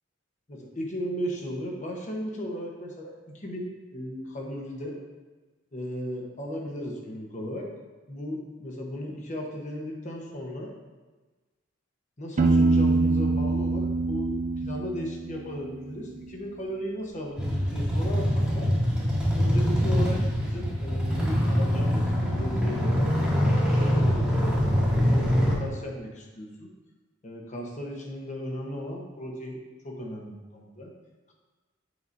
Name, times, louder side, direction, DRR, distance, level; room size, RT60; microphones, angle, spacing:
voice 1, 0.5-5.0 5.7-7.7 8.1-10.7 12.2-18.7 19.4-22.9 23.7-26.7 27.2-29.6 29.8-30.9, equal, 40° left, -1 dB, 1.1 m, -36 dB
Piano, 12.4-16.1, right 3 dB, 35° right, 0.4 m, -25 dB
sound 1, 17.4-25.6, equal, 5° right, 1.3 m, -24 dB
8.0 x 4.8 x 2.6 m, 1.2 s
head